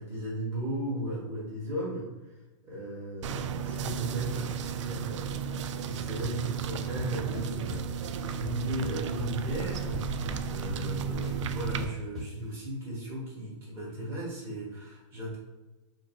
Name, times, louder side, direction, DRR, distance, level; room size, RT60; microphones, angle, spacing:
voice 1, 0.0-2.1 2.6-7.8 8.3-15.4, right 1 dB, 15° right, -6 dB, 1.4 m, -36 dB
sound 1, 3.2-11.9, right 7 dB, 70° right, 0.4 m, -34 dB
sound 2, 6.2-6.3 6.8-7.8 8.3-9.4 9.7-12.3, left 2 dB, ahead, 1.2 m, -39 dB
5.0 x 2.2 x 4.6 m, 1.1 s
supercardioid pair, 170°, 16 cm